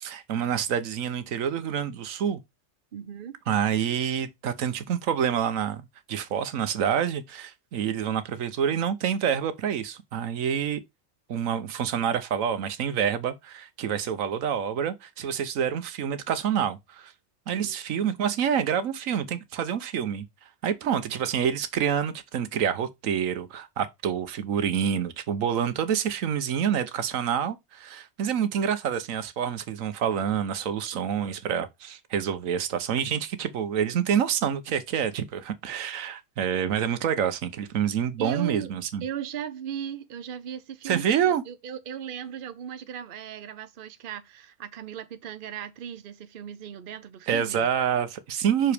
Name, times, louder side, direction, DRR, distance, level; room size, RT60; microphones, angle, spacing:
voice 1, 0.0-2.4 3.5-5.8 6.1-10.8 11.3-17.1 17.5-20.2 20.6-39.0 40.8-41.4 47.3-48.7, right 8 dB, 85° right, 1.2 m, -27 dB
voice 2, 2.9-3.3 17.5-17.8 38.2-38.7 39.0-47.7, right 9 dB, 50° right, 0.8 m, -37 dB
6.2 x 4.8 x 3.4 m
omnidirectional pair, 1.4 m